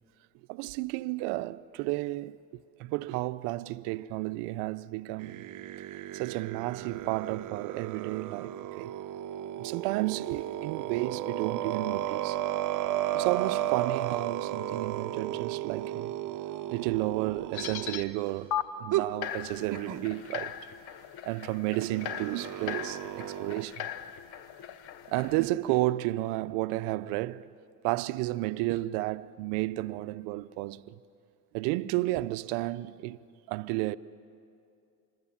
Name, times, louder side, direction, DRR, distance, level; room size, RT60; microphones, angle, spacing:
voice 1, 0.5-2.4 2.8-5.5 6.1-8.9 9.6-12.4 13.1-16.1 16.7-20.6 21.3-23.9 25.1-27.5 27.8-31.0 31.5-33.2 33.5-34.0, right 18 dB, 75° right, 0.7 m, -32 dB
sound 1, 5.2-18.0 18.9-19.1 19.7-20.1 21.8-23.7, right 13 dB, 45° right, 0.9 m, -34 dB
sound 2, 17.5-18.0 18.5-18.6 19.2-25.5, left 10 dB, 65° left, 1.2 m, -38 dB
26.5 x 20.5 x 7.3 m
supercardioid pair, 100°, 42 cm